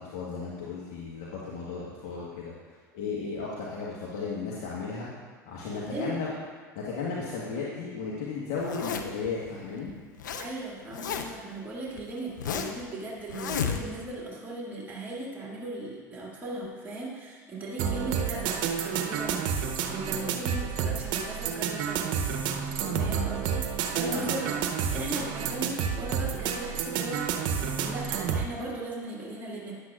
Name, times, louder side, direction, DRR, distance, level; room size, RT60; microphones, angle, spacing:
voice 1, 0.0-2.5 2.9-5.1 5.4-6.3 6.7-9.9 22.8-23.1 24.1-24.3, left 4 dB, 60° left, -5 dB, 1.4 m, -35 dB
voice 2, 5.7-6.2 10.4-22.1 22.9-29.8, right 2 dB, 15° right, -5 dB, 2.1 m, -38 dB
Zipper (clothing), 8.6-9.3 9.9-10.5 10.7-11.5 12.0-12.8 13.3-14.1, left 7 dB, 85° left, 0.6 m, -32 dB
sound 1, 17.8-28.5, right 7 dB, 60° right, 0.8 m, -30 dB
10.5 x 7.9 x 2.5 m, 1.5 s
hypercardioid pair, 80°, 10 cm